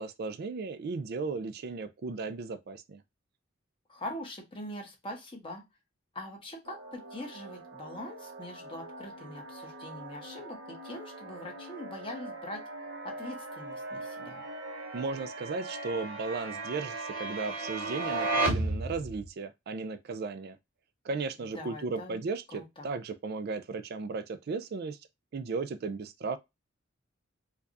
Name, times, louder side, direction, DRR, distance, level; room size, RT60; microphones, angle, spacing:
voice 1, 0.0-3.0 14.9-20.6 21.0-25.0 25.3-26.4, right 4 dB, 50° right, 0.4 m, -35 dB
voice 2, 3.9-5.6 6.1-12.6 13.0-14.4 21.5-22.2 22.5-22.9, left 1 dB, 25° left, 1.2 m, -43 dB
sound 1, 6.7-19.3, right 2 dB, 85° right, 0.9 m, -37 dB
4.6 x 2.3 x 2.5 m
head